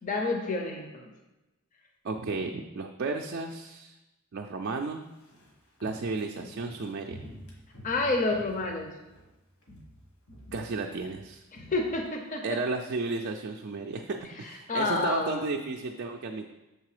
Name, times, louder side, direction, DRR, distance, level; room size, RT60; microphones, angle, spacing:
voice 1, 0.0-0.9 7.8-8.9 11.7-12.4 14.7-15.4, left 3 dB, 35° left, 3 dB, 0.6 m, -28 dB
voice 2, 2.0-4.0 4.3-5.0 5.8-7.2 10.5-11.4 12.4-16.5, right 3 dB, 50° right, 2 dB, 0.3 m, -33 dB
Walk footsteps, 5.0-9.3 9.6-10.0 10.3-12.6 12.9-13.0, equal, 70° left, 1.5 m, -48 dB
6.7 x 3.7 x 4.8 m, 1.0 s
head